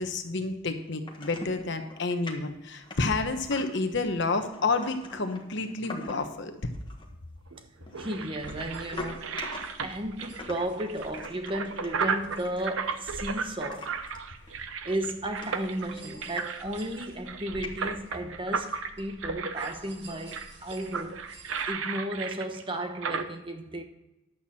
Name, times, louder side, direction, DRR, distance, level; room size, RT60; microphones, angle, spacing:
voice 1, 0.0-6.5, left 3 dB, 55° left, 1.2 m, -29 dB
sound 1, 1.1-1.6 1.9-2.4 2.8-3.9 4.3-6.4 6.7-7.1 7.9-9.9 10.4-13.2 13.7-14.2 14.5-14.6 15.0-15.1 15.4-16.5 16.7-17.2 17.6-18.2, left 2 dB, 25° left, 1.4 m, -43 dB
sound 2, 7.5-23.2, right 5 dB, 70° right, 0.8 m, -35 dB
voice 2, 8.0-9.5 9.8-14.0 14.8-21.2 21.7-23.8, right 1 dB, 25° right, 1.0 m, -34 dB
sound 3, 8.4-21.7, right 1 dB, 55° right, 1.8 m, -50 dB
11.5 x 8.2 x 4.3 m
head